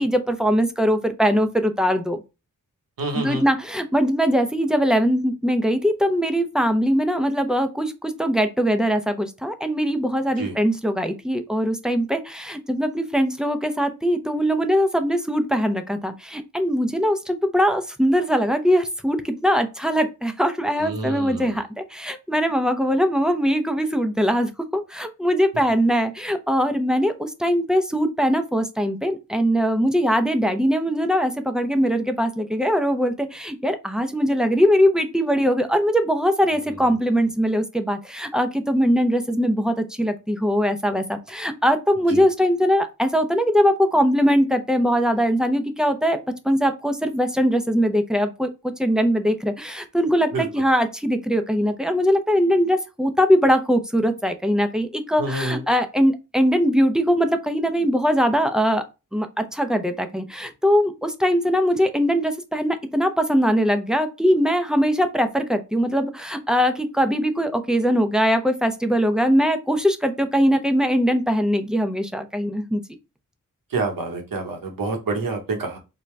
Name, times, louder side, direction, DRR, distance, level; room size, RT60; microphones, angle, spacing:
voice 1, 0.0-2.2 3.1-46.2 46.4-58.8 59.1-72.8, equal, ahead, 7 dB, 0.6 m, -21 dB
voice 2, 3.0-3.4 10.4-10.6 20.8-21.6 42.1-42.2 50.3-50.5 55.2-55.6 73.7-75.8, right 3 dB, 90° right, 3 dB, 1.1 m, -27 dB
3.9 x 2.3 x 3.2 m, 0.27 s
cardioid pair, 60°, 33 cm